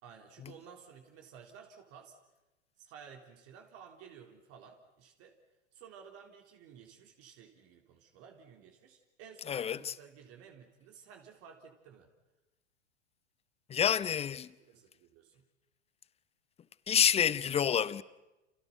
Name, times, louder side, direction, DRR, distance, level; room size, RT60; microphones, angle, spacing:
voice 1, 0.0-2.2 2.8-5.4 5.7-12.1 14.6-15.4, right 7 dB, 40° right, 3.8 m, -54 dB
voice 2, 9.5-9.9 13.7-14.5 16.9-18.0, left 8 dB, 15° left, 0.9 m, -28 dB
29.5 x 29.5 x 5.8 m
figure-of-eight pair, 95°, 36 cm